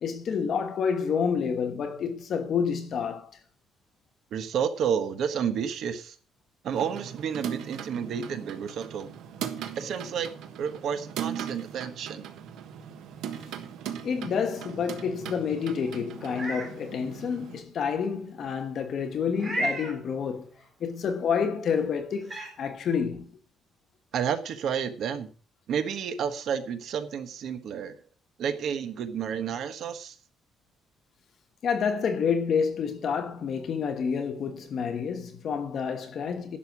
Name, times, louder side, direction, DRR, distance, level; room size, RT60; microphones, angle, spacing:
voice 1, 0.0-3.3 14.0-20.5 20.8-23.4 31.6-36.6, left 6 dB, 45° left, 1.2 m, -29 dB
voice 2, 4.3-6.2 6.6-9.1 9.8-10.3 10.6-12.3 24.1-25.3 25.7-27.9 28.4-30.2, right 7 dB, 55° right, 1.3 m, -30 dB
sound 1, 6.7-17.6, right 9 dB, 75° right, 1.5 m, -39 dB
Meow, 16.2-16.7 17.2-17.3 19.3-20.0 21.6-21.7 22.2-22.5, right 2 dB, 15° right, 4.0 m, -32 dB
11.5 x 6.8 x 6.0 m
cardioid pair, 175°, 0 cm